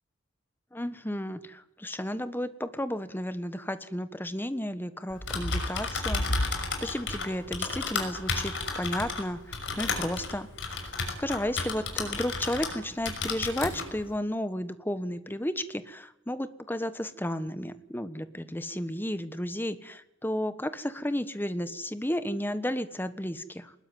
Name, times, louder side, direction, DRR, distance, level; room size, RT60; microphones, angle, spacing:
voice 1, 0.7-6.4 6.8-10.5 11.2-23.7, left 1 dB, 10° left, 12 dB, 1.3 m, -33 dB
Typing, 5.1-12.8 13.1-13.9, left 3 dB, 65° left, 5.9 m, -32 dB
22.0 x 20.5 x 9.3 m, 0.84 s
head